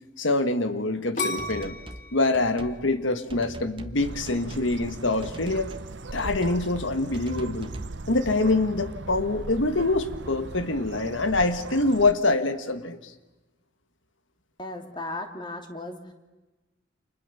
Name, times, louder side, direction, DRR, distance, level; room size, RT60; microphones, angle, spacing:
voice 1, 0.2-1.7 2.1-5.7 6.1-7.7 8.1-13.1, left 2 dB, 75° left, 10 dB, 1.6 m, -25 dB
sound 1, 1.2-4.1 4.6-5.1, left 3 dB, 40° left, 2.6 m, -34 dB
sound 2, 1.4-2.1 2.3-2.8 3.3-4.0 4.3-4.7 5.2-5.9 6.2-6.7 7.1-8.0, right 1 dB, 25° right, 1.4 m, -41 dB
Bird, 4.0-12.1, right 2 dB, 65° right, 0.8 m, -39 dB
voice 2, 14.6-16.1, left 2 dB, 25° left, 5 dB, 2.8 m, -36 dB
30.0 x 27.5 x 7.1 m, 1.1 s
head